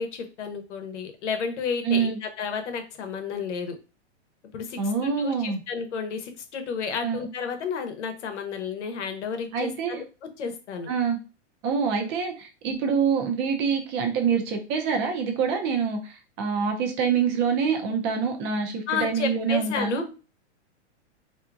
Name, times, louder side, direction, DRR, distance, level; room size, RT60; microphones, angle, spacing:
voice 1, 0.0-3.8 4.5-10.0 10.4-10.9 18.9-20.1, left 6 dB, 80° left, 7 dB, 0.9 m, -32 dB
voice 2, 1.8-2.2 4.8-5.6 7.0-7.3 9.5-10.0 10.9-11.2 11.6-20.0, right 6 dB, 30° right, 4 dB, 0.6 m, -26 dB
3.4 x 2.7 x 2.4 m, 0.33 s
hypercardioid pair, 135°, 35 cm